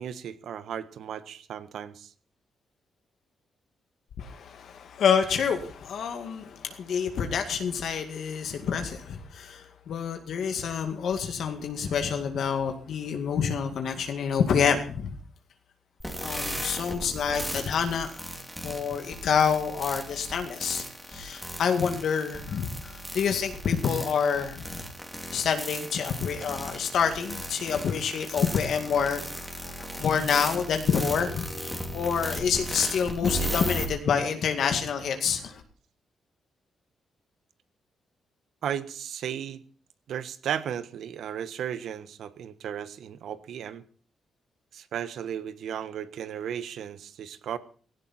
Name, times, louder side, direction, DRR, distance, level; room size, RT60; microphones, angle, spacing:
voice 1, 0.0-2.1 38.6-39.6 40.1-43.8 44.7-47.6, right 9 dB, 70° right, 13 dB, 1.4 m, -35 dB
voice 2, 4.2-15.1 16.2-18.2 18.6-20.8 21.1-24.9 25.3-29.3 29.6-31.5 31.9-35.6, left 7 dB, 60° left, 6 dB, 2.2 m, -27 dB
sound 1, 16.0-33.9, equal, 5° right, 2.9 m, -36 dB
17.0 x 17.0 x 4.4 m, 0.43 s
wide cardioid pair, 170°, 0 cm